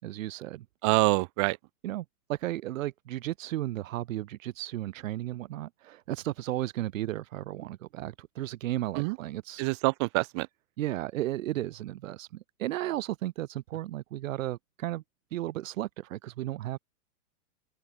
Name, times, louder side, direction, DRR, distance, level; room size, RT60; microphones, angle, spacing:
voice 1, 0.0-0.7 1.8-9.7 10.8-15.0 15.3-16.8, right 15 dB, 55° right, 5.9 m, -34 dB
voice 2, 0.8-1.6 9.0-9.2 9.6-10.5, right 29 dB, 20° right, 0.6 m, -25 dB
open air
supercardioid pair, 160°, 47 cm